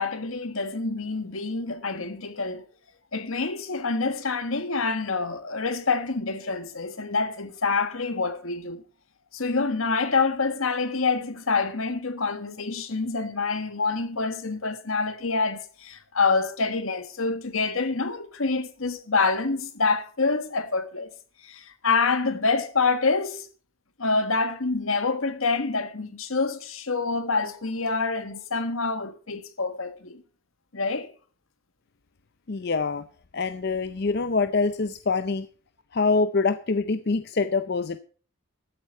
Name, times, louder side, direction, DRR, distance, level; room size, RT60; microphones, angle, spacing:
voice 1, 0.0-2.6 3.1-8.8 9.3-21.1 21.4-23.5 24.0-30.2 30.7-31.1, left 4 dB, 80° left, 1.5 m, -26 dB
voice 2, 32.5-33.0 33.3-35.5 35.9-38.0, left 4 dB, 50° left, 0.6 m, -25 dB
13.0 x 8.6 x 5.6 m
head